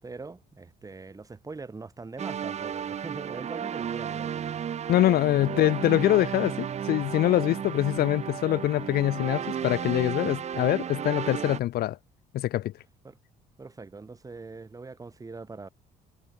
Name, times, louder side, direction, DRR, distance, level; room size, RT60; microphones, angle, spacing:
voice 1, 0.0-4.6 5.4-5.7 13.0-13.2 13.6-15.7, right 3 dB, 20° right, 3.6 m, -42 dB
sound 1, 2.2-11.6, right 8 dB, 40° right, 1.0 m, -33 dB
voice 2, 4.9-12.0 12.3-12.7, left 14 dB, 65° left, 1.0 m, -24 dB
cardioid pair, 110°, 17 cm